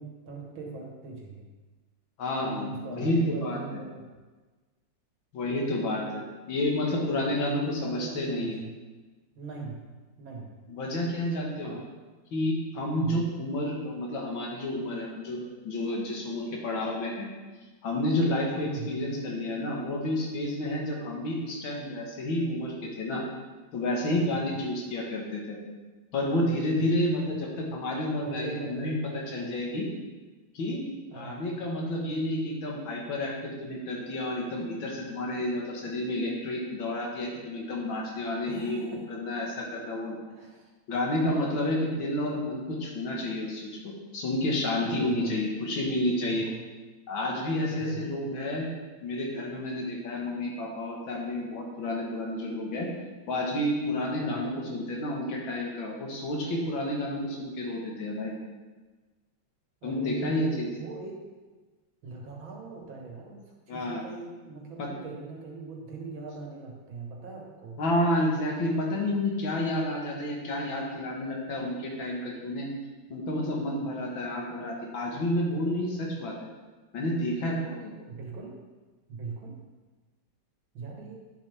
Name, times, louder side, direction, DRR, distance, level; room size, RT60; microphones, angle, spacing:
voice 1, 0.0-1.5 2.4-4.1 6.0-6.3 7.2-7.6 7.8-8.7 9.4-9.8 10.2-10.6 11.6-11.8 12.9-13.3 18.6-19.0 24.1-24.4 26.8-26.9 28.2-29.0 29.3-29.6 31.1-31.4 38.5-39.0 40.2-40.7 41.3-41.5 44.8-45.4 46.2-46.6 47.6-48.1 54.2-54.4 59.8-61.2 62.0-67.8 78.1-78.6 79.1-79.6 80.7-81.2, right 4 dB, 85° right, -1 dB, 2.4 m, -41 dB
voice 2, 2.2-3.6 5.3-6.2 6.5-8.6 10.7-11.8 12.3-17.3 17.8-23.2 23.7-25.6 26.1-28.9 29.3-29.9 30.5-30.8 31.1-40.2 40.9-46.5 47.1-48.7 49.0-52.9 53.3-58.4 59.8-60.7 63.7-64.0 64.8-64.9 67.8-72.7 73.1-76.3 76.9-77.9, left 1 dB, 90° left, -1 dB, 2.3 m, -30 dB
9.1 x 7.4 x 3.5 m, 1.3 s
omnidirectional pair, 2.1 m